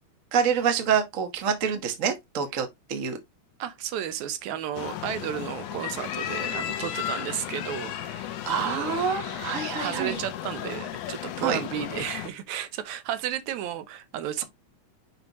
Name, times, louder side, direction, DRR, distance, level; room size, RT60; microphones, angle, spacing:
voice 1, 0.3-3.2 8.5-10.2 11.4-11.6, right 7 dB, 50° right, 0.9 m, -26 dB
voice 2, 3.6-9.2 9.7-14.4, right 10 dB, 75° right, 2.1 m, -33 dB
sound 1, 4.8-12.3, left 11 dB, 90° left, 2.3 m, -34 dB
6.5 x 5.4 x 3.0 m
omnidirectional pair, 3.4 m